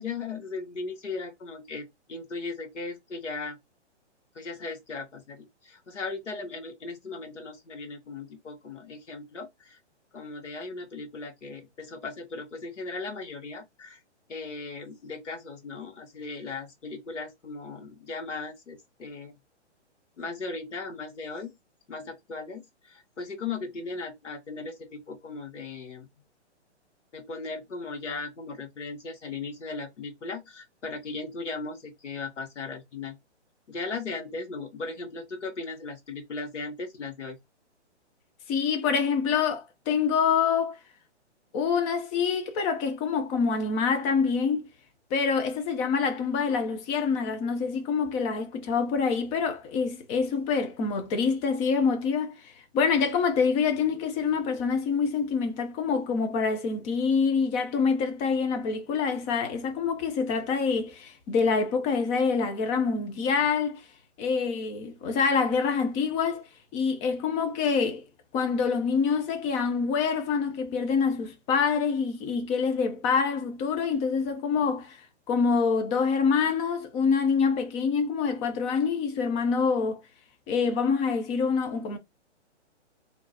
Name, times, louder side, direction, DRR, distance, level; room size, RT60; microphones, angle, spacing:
voice 1, 0.0-3.6 4.3-9.8 10.1-14.0 14.3-19.3 20.2-21.5 21.9-26.1 27.1-33.1 33.7-37.4, left 4 dB, 85° left, 1.5 m, -37 dB
voice 2, 38.5-40.8 41.5-44.7 45.1-63.8 64.2-66.4 66.7-68.0 68.3-75.0 75.3-80.0 80.5-82.0, left 5 dB, 20° left, 0.7 m, -26 dB
3.8 x 2.9 x 2.6 m
hypercardioid pair, 135°, 35 cm